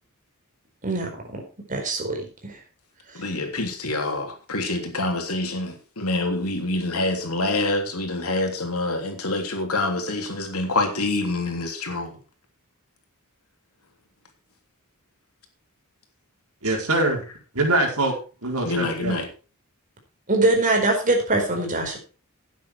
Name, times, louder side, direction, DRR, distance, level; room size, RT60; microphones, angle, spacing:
voice 1, 0.8-1.4 1.7-2.6 3.1-3.3 20.3-22.0, right 2 dB, 35° right, 4.5 m, -23 dB
voice 2, 3.1-12.2 18.6-19.3, left 2 dB, 80° left, 3.3 m, -26 dB
voice 3, 16.6-17.2 17.5-18.1 18.4-19.2, right 2 dB, 85° right, 4.7 m, -23 dB
12.5 x 9.5 x 4.7 m
head